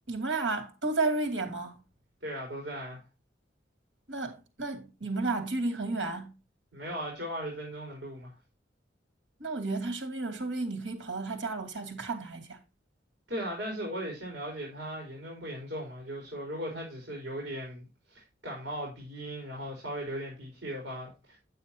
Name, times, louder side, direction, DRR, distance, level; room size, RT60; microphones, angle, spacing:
voice 1, 0.1-1.7 4.1-6.3 9.4-12.6, right 3 dB, 90° right, 2.6 m, -32 dB
voice 2, 2.2-3.0 6.7-8.3 13.3-21.4, equal, 65° right, 4.0 m, -38 dB
9.2 x 8.0 x 2.9 m
head